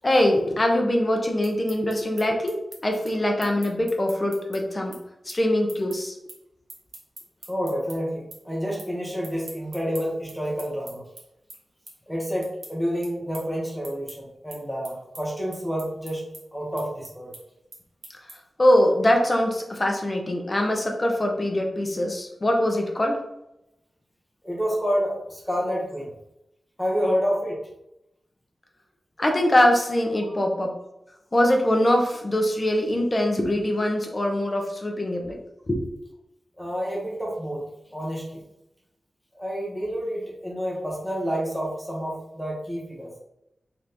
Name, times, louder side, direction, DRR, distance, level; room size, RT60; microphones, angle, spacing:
voice 1, 0.0-2.6 2.8-5.0 5.3-6.1 18.6-23.2 29.2-30.8 31.3-35.4 35.7-35.9, left 1 dB, 25° left, 2 dB, 0.6 m, -23 dB
sound 1, 1.4-8.0 8.3-8.9 9.2-18.6, right 2 dB, 75° right, 1.2 m, -45 dB
voice 2, 7.5-11.0 12.1-17.3 24.4-26.1 26.8-27.6 30.2-30.4 36.6-37.6 37.9-38.4 39.3-43.1, equal, ahead, -3 dB, 1.0 m, -29 dB
3.4 x 3.0 x 3.9 m, 0.85 s
wide cardioid pair, 160°, 0 cm